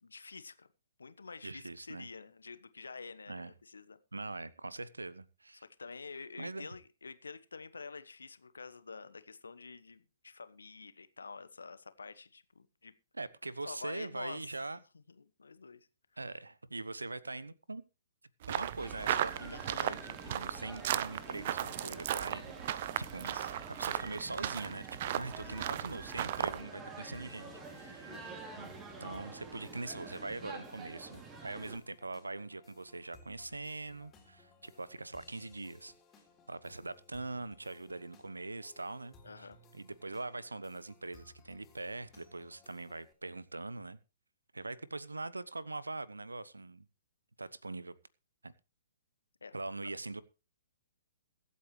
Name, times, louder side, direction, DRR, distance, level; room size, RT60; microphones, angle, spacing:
voice 1, 0.0-0.7 1.0-4.0 5.5-12.9 13.6-14.5 14.9-15.9 19.5-19.9 23.2-23.5 25.2-25.6 28.1-28.4 39.2-39.6 49.4-49.5 49.8-49.9, left 4 dB, 70° left, 1.2 m, -48 dB
voice 2, 1.4-2.1 3.3-3.5 4.1-5.6 6.4-6.7 13.1-14.8 16.2-17.8 18.5-28.2 28.6-28.7 29.0-35.9 36.5-39.5 39.7-44.0 44.5-46.9 47.4-47.9 48.4-48.5 49.5-50.2, right 3 dB, 80° right, 0.9 m, -42 dB
sound 1, 18.4-26.6, right 11 dB, 45° right, 0.7 m, -36 dB
sound 2, 18.8-31.8, right 3 dB, 20° right, 2.8 m, -48 dB
sound 3, 27.1-43.1, left 2 dB, 15° left, 3.5 m, -62 dB
22.5 x 8.6 x 3.2 m
figure-of-eight pair, 120°, 0 cm